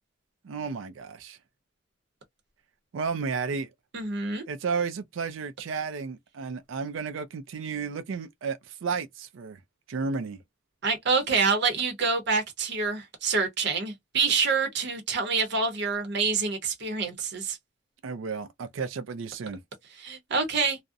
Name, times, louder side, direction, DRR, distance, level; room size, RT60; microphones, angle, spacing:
voice 1, 0.4-1.4 2.9-3.7 4.5-9.6 9.9-10.4 18.0-19.6, right 5 dB, 85° right, 0.4 m, -32 dB
voice 2, 3.9-4.4 10.8-17.6 20.0-20.8, right 4 dB, 65° right, 0.8 m, -27 dB
2.4 x 2.0 x 2.5 m
head